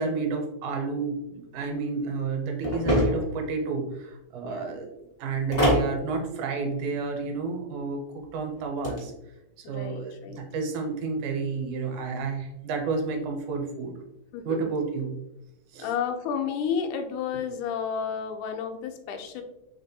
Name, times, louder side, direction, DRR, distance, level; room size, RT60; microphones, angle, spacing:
voice 1, 0.0-4.9 5.2-8.0 8.3-9.1 9.7-14.0 14.5-15.2 15.7-15.9, right 4 dB, 80° right, 2 dB, 2.2 m, -30 dB
sound 1, 2.6-3.4 5.5-5.9 8.6-9.0, equal, 55° left, 0.4 m, -23 dB
voice 2, 4.4-4.8 9.6-10.4 14.3-14.7 15.8-19.4, left 7 dB, 85° left, 5 dB, 2.0 m, -31 dB
5.1 x 3.4 x 2.7 m, 0.89 s
omnidirectional pair, 3.5 m